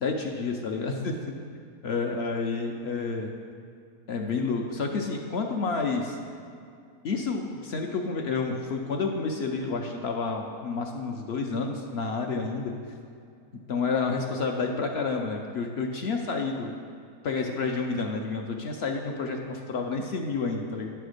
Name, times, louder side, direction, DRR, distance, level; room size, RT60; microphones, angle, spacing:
voice 1, 0.0-1.3 1.8-3.3 4.1-6.2 7.0-12.7 13.7-16.7 17.2-20.9, left 4 dB, 65° left, 2 dB, 0.7 m, -29 dB
9.5 x 3.4 x 6.4 m, 2.3 s
omnidirectional pair, 1.5 m